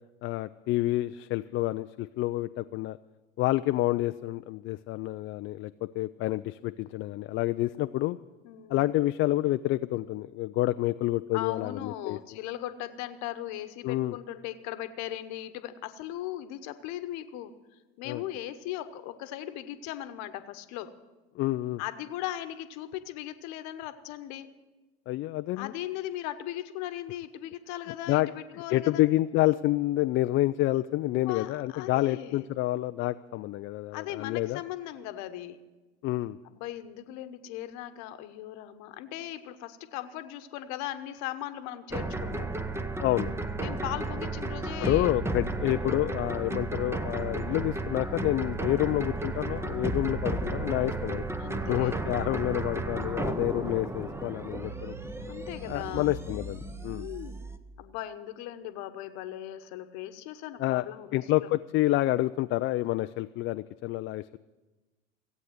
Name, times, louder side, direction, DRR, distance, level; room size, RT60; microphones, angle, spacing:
voice 1, 0.2-3.0 3.4-8.2 8.7-12.2 13.8-14.2 18.0-18.2 21.4-21.8 25.1-25.7 28.1-28.3 28.7-34.6 36.0-36.4 43.0-43.3 44.8-51.2 51.7-55.0 55.7-57.1 60.6-60.9 61.1-64.4, left 16 dB, 40° left, 11 dB, 0.4 m, -28 dB
voice 2, 8.4-8.8 11.3-17.5 18.0-20.9 21.8-24.5 25.6-29.0 31.2-32.5 33.9-35.6 36.5-42.5 43.6-45.1 51.4-52.0 55.3-56.1 56.9-57.4 57.8-61.5, left 13 dB, 60° left, 11 dB, 1.1 m, -38 dB
sound 1, 41.9-57.6, right 2 dB, 10° right, 0.8 m, -33 dB
Fire, 46.3-56.6, right 3 dB, 85° right, 1.4 m, -50 dB
16.5 x 8.4 x 8.0 m, 1.2 s
hypercardioid pair, 85°, 32 cm